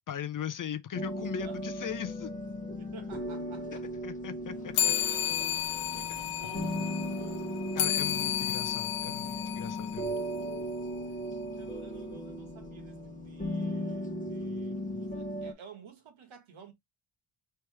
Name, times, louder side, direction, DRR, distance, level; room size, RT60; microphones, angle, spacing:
voice 1, 0.1-2.3 3.7-4.9 7.8-10.2, left 9 dB, 45° left, 0.5 m, -39 dB
sound 1, 0.9-15.5, equal, 15° left, 0.9 m, -37 dB
voice 2, 2.8-3.9 5.6-7.5 8.3-8.4 11.1-11.2 11.6-16.7, right 7 dB, 70° right, 1.8 m, -52 dB
sound 2, 4.7-10.6, left 11 dB, 85° left, 0.7 m, -32 dB
4.5 x 3.1 x 3.4 m
wide cardioid pair, 140°, 49 cm